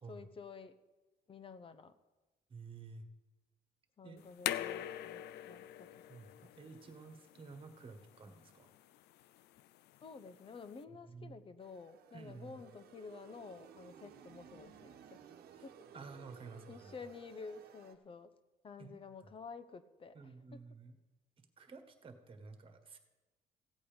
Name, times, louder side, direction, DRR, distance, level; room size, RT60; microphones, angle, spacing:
voice 1, 0.1-0.8 1.3-1.9 4.0-6.0 6.4-6.5 10.0-15.4 15.6-15.8 16.7-18.3 18.6-20.6, left 4 dB, 30° left, 12 dB, 0.8 m, -51 dB
voice 2, 2.5-3.0 4.0-4.2 6.1-8.7 11.1-11.4 12.1-12.6 15.6-15.7 15.9-16.9 18.8-19.0 20.1-20.9 21.4-23.0, right 4 dB, 30° right, 7 dB, 1.7 m, -52 dB
sound 1, 4.2-10.8, left 12 dB, 80° left, 0.5 m, -44 dB
sound 2, 11.6-17.9, right 8 dB, 65° right, 1.2 m, -58 dB
15.5 x 8.4 x 5.2 m, 1.2 s
cardioid pair, 110°, 17 cm